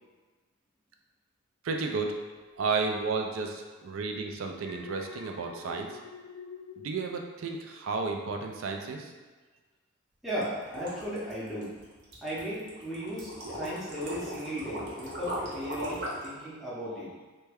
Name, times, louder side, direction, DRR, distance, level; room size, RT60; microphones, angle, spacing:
voice 1, 1.6-2.1 2.6-6.0 6.8-9.1, right 4 dB, 65° right, 3 dB, 0.4 m, -32 dB
Alarm, 4.5-7.9 8.2-8.6, left 5 dB, 60° left, 0.4 m, -47 dB
voice 2, 10.2-11.7 12.2-17.1, equal, ahead, -10 dB, 0.6 m, -36 dB
sound 1, 10.3-16.3, right 1 dB, 50° right, 0.8 m, -38 dB
3.3 x 2.2 x 3.3 m, 1.3 s
head